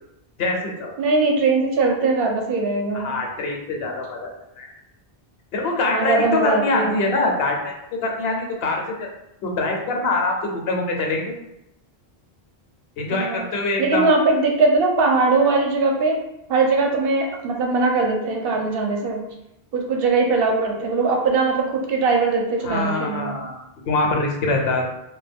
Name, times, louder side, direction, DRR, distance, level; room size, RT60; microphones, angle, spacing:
voice 1, 0.4-0.9 2.9-4.7 5.5-8.4 8.6-9.1 9.4-11.4 13.0-14.0 22.6-24.8, left 2 dB, 75° left, 1 dB, 0.8 m, -24 dB
voice 2, 1.0-3.1 5.9-6.9 13.1-13.4 13.8-16.2 16.5-19.2 19.7-23.3, right 3 dB, 70° right, 1 dB, 0.7 m, -20 dB
2.2 x 2.1 x 3.3 m, 0.85 s
omnidirectional pair, 1.0 m